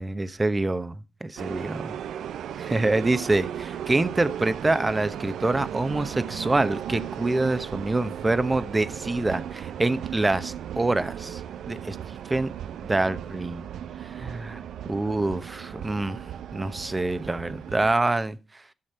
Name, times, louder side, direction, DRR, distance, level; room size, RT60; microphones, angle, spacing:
voice 1, 0.0-1.9 2.6-11.4 11.7-12.0 12.3-12.5 12.9-13.6 14.2-16.2 16.5-18.4, right 2 dB, 30° right, 1.0 m, -26 dB
sound 1, 1.4-18.0, right 9 dB, 80° right, 0.4 m, -36 dB
12.5 x 6.5 x 4.3 m
supercardioid pair, 45°, 0 cm